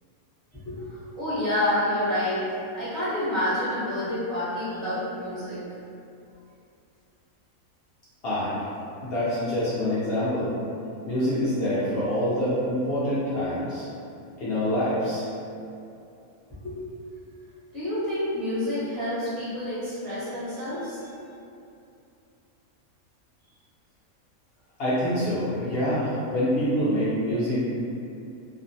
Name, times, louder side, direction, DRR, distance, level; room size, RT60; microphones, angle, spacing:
voice 1, 0.5-2.4 2.7-5.6 16.6-16.8 17.7-21.0, left 1 dB, ahead, -14 dB, 0.4 m, -28 dB
voice 2, 8.2-8.6 9.0-10.5 11.1-13.9 14.4-15.3 24.8-27.7, equal, 70° left, -10 dB, 0.6 m, -26 dB
2.5 x 2.1 x 2.6 m, 2.6 s
omnidirectional pair, 1.5 m